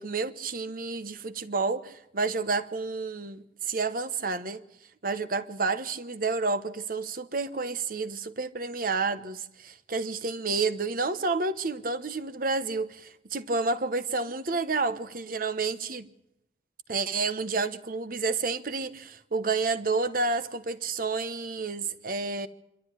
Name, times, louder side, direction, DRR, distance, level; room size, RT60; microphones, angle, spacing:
voice 1, 0.0-4.6 5.0-16.1 16.9-22.5, right 4 dB, 50° right, 1.1 m, -30 dB
26.0 x 12.5 x 9.8 m
head